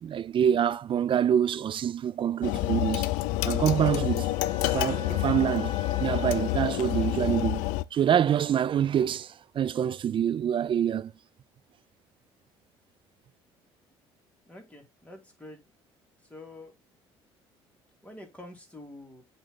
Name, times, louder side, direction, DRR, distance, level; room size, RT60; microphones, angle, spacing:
voice 1, 0.0-3.1 3.4-4.3 4.6-5.7 6.0-11.1, right 9 dB, 40° right, 0.4 m, -26 dB
sound 1, 2.4-7.8, left 17 dB, 75° left, 0.4 m, -28 dB
Wind instrument woodwind instrument, 3.7-7.7, left 4 dB, 40° left, 1.5 m, -44 dB
voice 2, 14.5-15.6 16.2-16.7 18.0-19.2, left 1 dB, 10° left, 3.5 m, -47 dB
7.8 x 3.6 x 4.0 m
hypercardioid pair, 65°, 13 cm